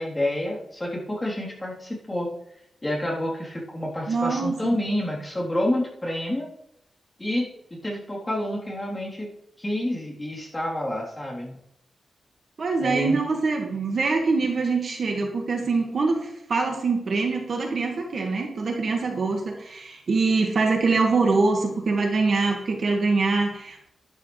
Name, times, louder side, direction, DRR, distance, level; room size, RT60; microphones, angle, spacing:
voice 1, 0.0-2.3 2.8-6.5 7.2-9.3 9.6-11.6 12.8-13.2, left 1 dB, 15° left, -5 dB, 3.7 m, -28 dB
voice 2, 4.1-4.7 12.6-23.9, right 3 dB, 50° right, 2 dB, 1.9 m, -24 dB
11.5 x 11.5 x 3.3 m, 0.76 s
wide cardioid pair, 160°, 0 cm